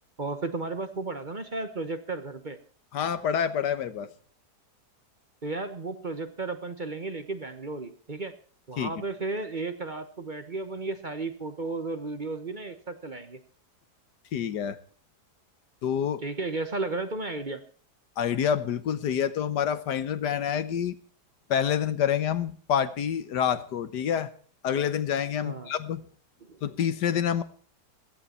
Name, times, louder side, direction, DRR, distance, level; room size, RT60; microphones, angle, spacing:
voice 1, 0.2-2.6 5.4-8.3 8.7-13.4 16.2-17.6 25.4-25.7 26.4-26.6, right 3 dB, 30° right, 10 dB, 1.1 m, -34 dB
voice 2, 2.9-4.1 8.8-8.9 14.3-14.8 15.8-16.2 18.2-21.0 21.5-24.3 24.6-26.0 26.6-27.4, left 8 dB, 85° left, 13 dB, 1.7 m, -27 dB
16.5 x 14.0 x 4.4 m, 0.43 s
omnidirectional pair, 1.8 m